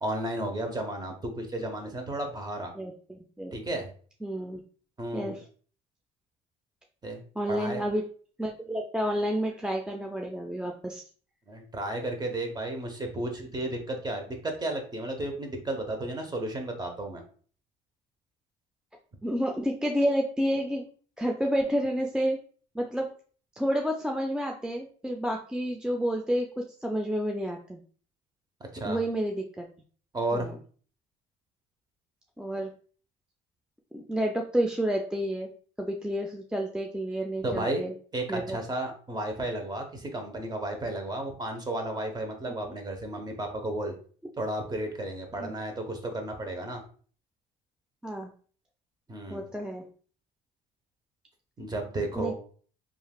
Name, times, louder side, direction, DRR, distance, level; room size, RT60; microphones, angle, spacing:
voice 1, 0.0-2.7 3.5-3.9 5.0-5.3 7.0-7.8 11.5-17.2 28.7-29.0 30.1-30.5 37.4-37.8 38.1-43.9 44.4-46.8 49.1-49.5 51.6-52.3, right 1 dB, 25° right, 4 dB, 0.8 m, -33 dB
voice 2, 2.8-3.5 4.2-4.6 5.1-5.4 7.4-8.0 8.4-11.0 19.2-20.9 21.2-22.4 22.7-23.1 23.6-27.8 28.8-29.7 30.3-30.6 32.4-32.7 33.9-35.5 35.8-37.9 38.3-38.6 45.4-45.5 48.0-48.3 49.3-49.9 52.2-52.4, equal, 5° right, 1 dB, 0.4 m, -30 dB
3.2 x 2.4 x 2.2 m, 0.44 s
supercardioid pair, 75°, 18 cm